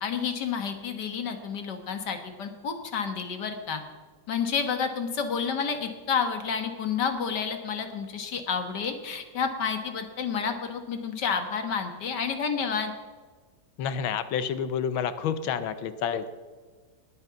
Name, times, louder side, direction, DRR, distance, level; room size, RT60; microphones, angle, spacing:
voice 1, 0.0-3.8 4.3-12.9, left 6 dB, 60° left, 7 dB, 2.0 m, -30 dB
voice 2, 13.8-16.3, left 7 dB, 90° left, 12 dB, 1.6 m, -29 dB
20.5 x 8.0 x 5.8 m, 1.4 s
omnidirectional pair, 2.1 m